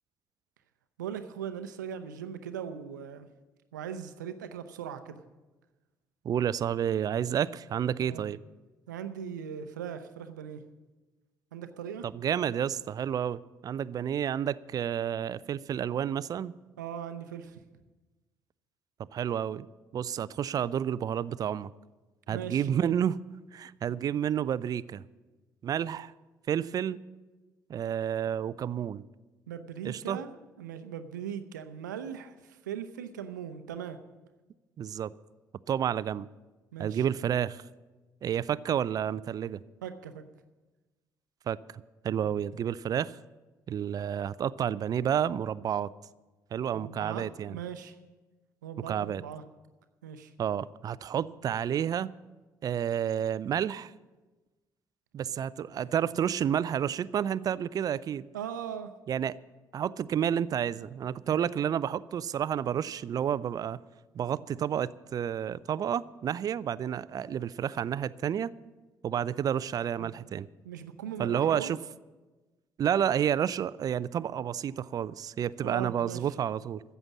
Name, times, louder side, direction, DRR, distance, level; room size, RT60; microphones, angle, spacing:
voice 1, 1.0-3.3 3.7-5.2 8.0-8.3 8.9-10.6 11.5-12.1 16.8-17.6 22.3-22.7 29.5-34.0 36.7-37.1 39.8-40.2 46.7-48.0 48.6-49.4 50.0-50.3 58.3-58.9 61.3-61.4 70.0-70.1 70.6-71.7 75.6-76.3, right 8 dB, 75° right, 10 dB, 0.7 m, -39 dB
voice 2, 6.2-8.4 12.0-16.5 19.1-19.7 19.9-21.7 22.3-23.2 23.5-25.0 25.6-26.1 26.5-27.0 27.7-29.0 29.8-30.2 34.8-35.1 35.7-36.3 36.8-37.6 38.2-39.6 41.5-41.6 42.0-43.2 43.7-45.9 46.5-47.6 48.9-49.2 50.4-52.1 52.6-53.9 55.1-58.3 59.1-59.4 59.7-63.8 64.1-68.5 69.0-70.5 71.2-71.8 72.8-76.8, right 9 dB, 40° right, 19 dB, 0.4 m, -30 dB
14.0 x 8.0 x 7.2 m, 1.2 s
figure-of-eight pair, 45°, 10 cm